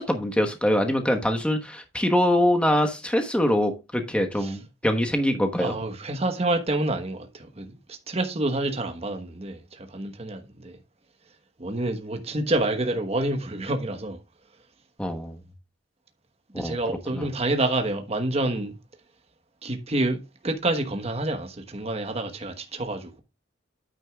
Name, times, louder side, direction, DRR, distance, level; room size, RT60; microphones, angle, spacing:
voice 1, 0.0-5.7 15.0-15.4 16.5-16.8 17.1-17.3, left 1 dB, 5° left, 1.2 m, -24 dB
voice 2, 5.6-10.8 11.6-14.2 16.5-18.8 19.6-20.2 20.4-23.2, right 2 dB, 35° right, 1.2 m, -28 dB
9.2 x 9.1 x 2.3 m
head